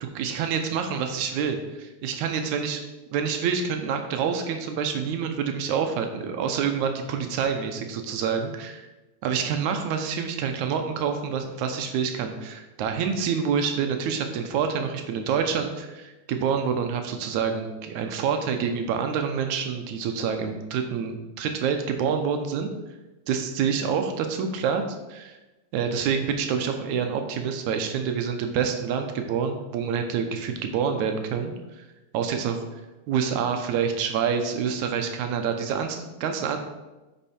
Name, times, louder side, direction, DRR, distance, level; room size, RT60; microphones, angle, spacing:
voice 1, 0.0-2.8 3.1-8.8 9.2-22.7 23.3-24.8 25.1-25.4 25.7-31.8 32.1-32.6 33.1-36.6, right 6 dB, 75° right, 5 dB, 2.0 m, -27 dB
9.0 x 5.4 x 4.2 m, 1.1 s
omnidirectional pair, 3.6 m